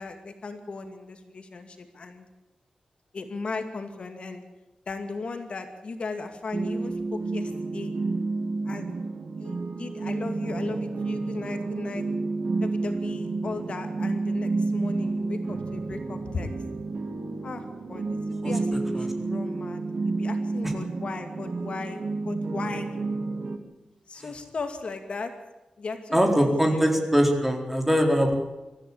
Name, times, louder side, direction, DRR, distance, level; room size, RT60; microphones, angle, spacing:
voice 1, 0.0-2.2 3.1-4.4 4.9-7.9 8.7-9.0 9.4-12.1 12.6-16.5 17.4-17.6 17.9-22.9 24.1-25.3 25.8-27.0, left 3 dB, 55° left, 6 dB, 2.4 m, -37 dB
sound 1, 6.5-23.6, right 3 dB, 65° right, 2.4 m, -30 dB
voice 2, 26.1-28.3, equal, 10° right, 3 dB, 4.2 m, -22 dB
24.5 x 14.5 x 8.6 m, 1.0 s
wide cardioid pair, 110°, 2 cm